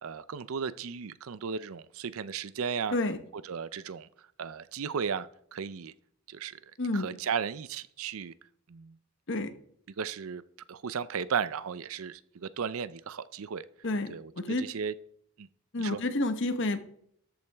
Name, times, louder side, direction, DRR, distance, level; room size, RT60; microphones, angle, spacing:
voice 1, 0.0-3.0 3.3-5.9 6.3-8.3 8.7-9.0 10.0-10.4 10.7-13.6 14.1-15.0 15.4-15.5 15.8-16.0, right 6 dB, 75° right, 16 dB, 0.5 m, -35 dB
voice 2, 13.8-14.6 15.7-16.8, left 2 dB, 55° left, 9 dB, 1.0 m, -29 dB
13.5 x 8.5 x 3.5 m, 0.67 s
head